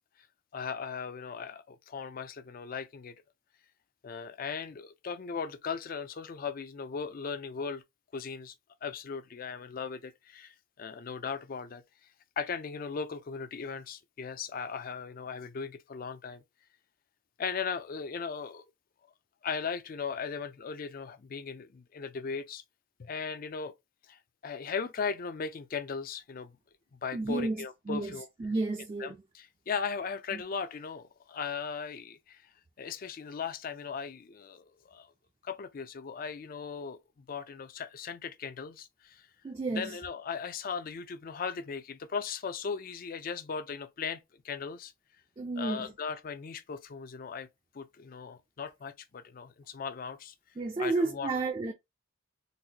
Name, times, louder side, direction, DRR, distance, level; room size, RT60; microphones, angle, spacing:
voice 1, 0.5-3.2 4.0-7.8 8.1-8.5 8.8-11.8 12.4-16.4 17.4-18.6 19.4-22.6 23.0-23.7 24.1-26.5 27.0-28.3 29.0-32.4 32.8-35.1 35.4-39.3 39.7-44.9 45.6-47.5 47.7-50.3 50.8-51.3, left 5 dB, 45° left, 0.4 m, -38 dB
voice 2, 27.1-29.2 30.3-30.4 39.4-40.0 45.4-45.9 50.6-51.7, right 3 dB, 25° right, 0.3 m, -32 dB
4.0 x 2.1 x 2.8 m
head